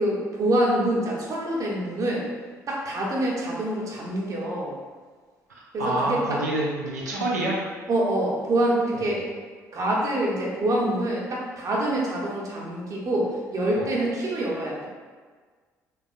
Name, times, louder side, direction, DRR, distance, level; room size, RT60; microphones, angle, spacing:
voice 1, 0.0-2.3 2.7-4.7 5.7-6.4 7.1-7.2 7.9-9.3 9.7-14.9, right 1 dB, 40° right, -3 dB, 0.8 m, -26 dB
voice 2, 5.5-7.6 8.9-9.2 13.8-13.9, right 2 dB, 85° right, -4 dB, 0.4 m, -28 dB
3.4 x 2.3 x 2.4 m, 1.5 s
figure-of-eight pair, 50°, 9 cm